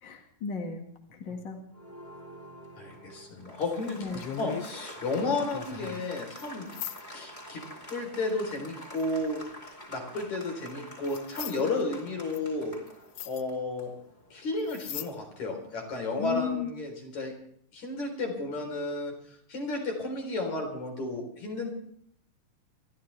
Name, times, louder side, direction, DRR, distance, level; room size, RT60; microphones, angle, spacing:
voice 1, 0.0-1.6 4.0-4.2 16.2-16.7, left 7 dB, 40° left, 2 dB, 2.1 m, -34 dB
Applause, 1.7-16.1, equal, 15° left, 2.4 m, -48 dB
voice 2, 2.8-4.1 4.4-6.7 7.1-7.6 7.9-9.4 9.9-12.8 13.3-13.9 14.3-17.3 17.7-19.1 19.5-21.7, left 2 dB, 55° left, 2 dB, 5.2 m, -32 dB
sound 1, 3.6-4.7 5.1-6.1 6.4-6.5 6.7-7.0 9.0-9.5 10.7-10.8 11.1-11.6 12.3-12.4 12.9-13.0 13.1-13.4 14.6-15.1 15.4-15.5, left 11 dB, 80° left, 1.4 m, -39 dB
27.5 x 13.0 x 3.4 m, 0.66 s
omnidirectional pair, 4.0 m